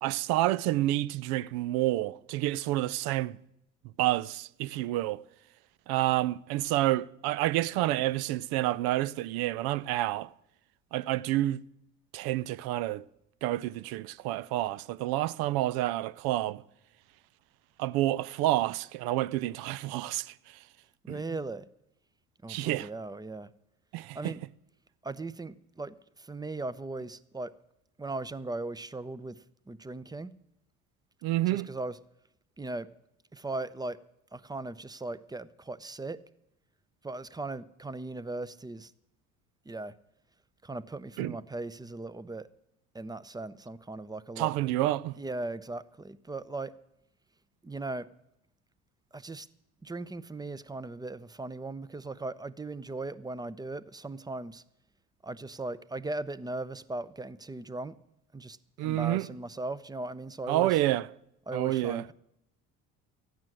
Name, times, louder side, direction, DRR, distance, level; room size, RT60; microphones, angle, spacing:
voice 1, 0.0-3.4 4.0-5.2 5.9-10.3 10.9-11.6 12.1-13.0 13.4-16.6 17.8-20.6 21.1-21.2 22.5-22.9 23.9-24.3 31.2-31.7 41.2-41.4 44.4-45.2 58.8-59.3 60.5-61.1 61.5-62.0, right 15 dB, 65° right, 0.5 m, -29 dB
voice 2, 21.0-21.6 22.4-23.5 24.1-24.4 25.0-27.5 28.0-30.3 31.5-32.0 32.6-32.9 33.3-34.0 34.3-36.2 37.0-38.9 39.7-39.9 40.6-42.5 42.9-44.5 45.1-46.7 47.6-48.1 49.1-49.5 49.8-54.6 55.2-58.0 58.3-60.8 61.5-62.1, right 2 dB, 10° right, 0.6 m, -38 dB
14.0 x 9.5 x 7.5 m
hypercardioid pair, 65°, 40 cm